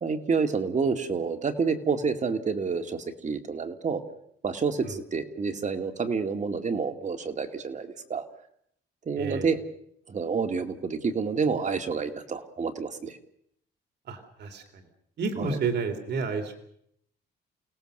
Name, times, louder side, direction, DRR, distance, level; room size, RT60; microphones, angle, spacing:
voice 1, 0.0-4.0 4.4-8.2 9.1-9.6 10.1-13.2 15.4-15.6, right 5 dB, 40° right, 6 dB, 2.3 m, -28 dB
voice 2, 9.2-9.5 14.1-14.8 15.2-16.6, right 4 dB, 65° right, 5 dB, 3.3 m, -31 dB
29.0 x 18.0 x 6.7 m, 0.70 s
cardioid pair, 110°, 19 cm